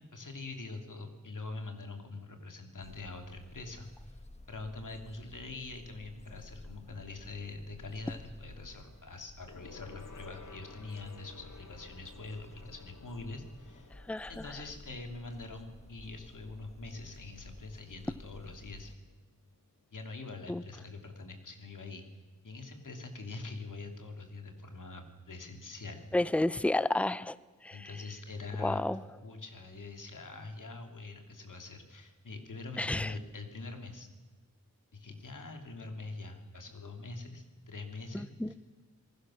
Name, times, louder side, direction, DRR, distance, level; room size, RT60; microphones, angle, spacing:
voice 1, 0.0-4.2 4.5-13.9 14.3-18.9 19.9-22.0 22.4-26.0 27.7-28.8 29.2-34.1 34.9-38.5, left 3 dB, 85° left, 5 dB, 2.9 m, -44 dB
sound 1, 2.8-18.9, left 1 dB, 20° left, 1.6 m, -53 dB
Gong, 9.5-19.2 19.5-19.8 20.1-20.2, left 4 dB, 65° left, 1.7 m, -56 dB
voice 2, 14.1-14.4 20.5-20.6 26.1-27.4 27.6-27.9 28.6-29.0 32.8-33.1 38.1-38.5, left 2 dB, 5° left, 17 dB, 0.6 m, -31 dB
27.5 x 19.5 x 6.4 m, 1.3 s
wide cardioid pair, 90°, 31 cm